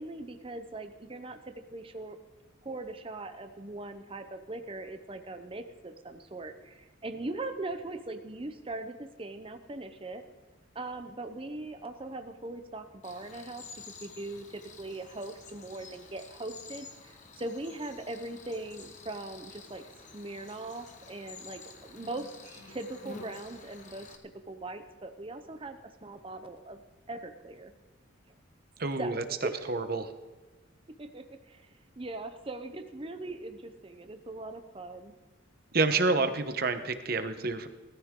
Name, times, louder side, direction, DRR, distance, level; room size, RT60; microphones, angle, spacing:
voice 1, 0.0-1.4 1.7-2.2 2.6-10.2 10.7-13.7 14.0-19.8 20.1-22.3 22.7-24.1 24.5-26.8 27.1-27.7 29.0-29.7 31.0-35.1, right 2 dB, 25° right, 7 dB, 0.8 m, -40 dB
Cricket, 13.0-24.2, left 4 dB, 40° left, 1.3 m, -50 dB
voice 2, 28.8-29.2 29.7-30.1 35.7-37.7, right 3 dB, 50° right, 9 dB, 1.0 m, -28 dB
19.0 x 13.5 x 3.8 m, 1.2 s
head